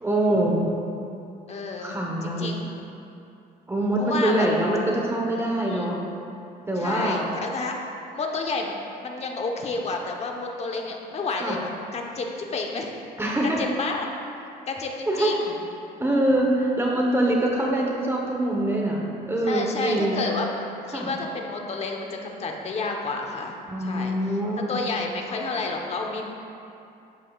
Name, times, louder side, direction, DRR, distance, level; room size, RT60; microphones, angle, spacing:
voice 1, 0.0-0.6 1.8-2.5 3.7-6.0 6.7-7.3 11.4-11.6 13.2-13.6 15.1-15.4 16.0-20.2 20.9-21.1 23.7-24.8, right 1 dB, 15° right, -2 dB, 1.1 m, -24 dB
voice 2, 1.5-2.0 2.2-2.7 4.0-4.5 5.6-5.9 6.8-7.7 8.1-8.7 9.0-12.9 13.6-14.1 14.7-15.6 16.2-16.3 19.4-20.5 20.9-24.1 24.7-26.3, left 3 dB, 40° left, 1 dB, 1.1 m, -30 dB
11.5 x 8.3 x 2.4 m, 2.6 s
cardioid pair, 110°, 17 cm